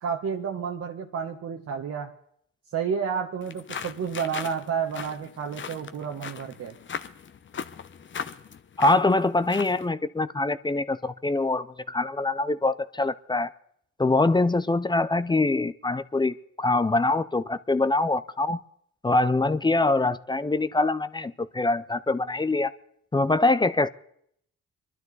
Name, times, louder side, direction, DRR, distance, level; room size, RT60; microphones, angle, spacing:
voice 1, 0.0-2.1 2.7-6.8, right 7 dB, 55° right, 1.3 m, -30 dB
sound 1, 3.4-9.9, left 7 dB, 40° left, 0.9 m, -39 dB
voice 2, 8.8-13.5 14.0-18.6 19.0-22.7 23.1-23.9, left 2 dB, 15° left, 0.6 m, -24 dB
23.0 x 12.0 x 4.0 m
cardioid pair, 90°, 30 cm